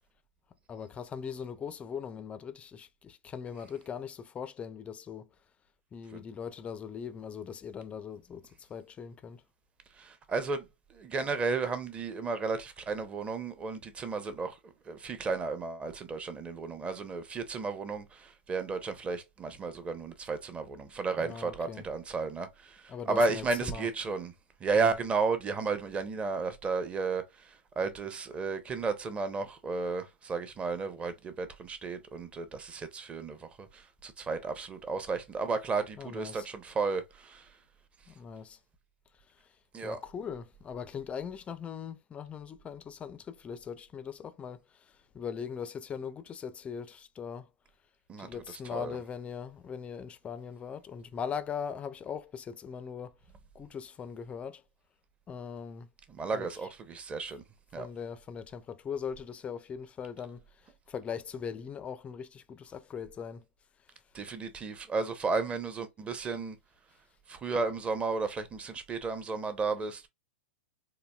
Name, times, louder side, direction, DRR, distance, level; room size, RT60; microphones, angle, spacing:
voice 1, 0.7-5.3 5.9-9.4 21.2-21.9 22.9-23.9 24.8-25.0 36.0-36.5 38.1-38.6 39.8-44.6 45.1-47.5 48.2-53.1 53.5-54.6 55.3-55.9 56.3-56.5 57.8-60.4 60.9-63.4, left 7 dB, 20° left, 0.4 m, -40 dB
voice 2, 10.0-10.6 11.0-14.6 14.9-22.8 23.1-24.3 24.6-27.2 27.8-37.4 39.7-40.0 48.1-48.3 48.7-49.0 56.1-57.4 57.7-57.9 64.1-66.6 67.3-70.1, right 4 dB, 20° right, 0.7 m, -33 dB
3.9 x 2.6 x 2.3 m
hypercardioid pair, 115°, 6 cm